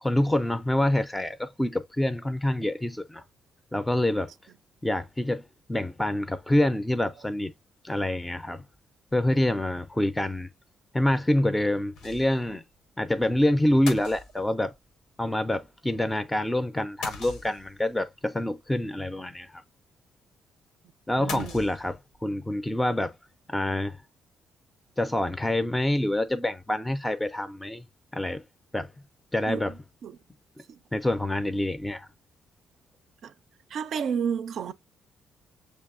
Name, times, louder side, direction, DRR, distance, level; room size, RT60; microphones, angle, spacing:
voice 1, 0.0-3.2 3.7-4.3 4.8-5.4 5.7-7.5 7.8-8.6 9.1-10.5 10.9-12.6 13.0-14.7 15.2-19.5 21.1-23.1 23.5-24.0 25.0-27.8 28.1-28.4 28.7-28.9 29.3-29.7 30.9-32.1, left 1 dB, 10° left, 0.4 m, -26 dB
sound 1, 12.0-12.5 12.8-12.9 13.9-14.7 17.0-17.9 21.3-22.2, left 4 dB, 85° left, 0.9 m, -39 dB
voice 2, 21.2-21.6 29.5-30.2 30.7-30.8 33.2-33.3 33.7-34.7, right 7 dB, 65° right, 0.4 m, -32 dB
6.4 x 2.7 x 2.4 m
cardioid pair, 90°, 0 cm